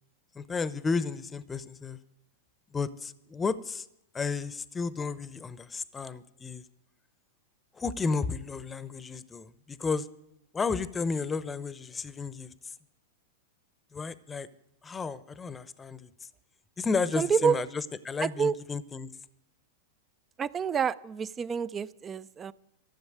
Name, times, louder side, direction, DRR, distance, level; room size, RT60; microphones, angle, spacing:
voice 1, 0.3-2.0 2.7-3.9 4.1-6.6 7.7-10.1 10.5-12.7 13.9-14.5 14.8-16.3 16.8-19.1, left 4 dB, 20° left, 16 dB, 0.8 m, -32 dB
voice 2, 17.2-17.6 18.2-18.5 20.4-22.5, right 6 dB, 25° right, 18 dB, 0.4 m, -28 dB
13.5 x 7.0 x 9.3 m, 0.81 s
hypercardioid pair, 100°, 0 cm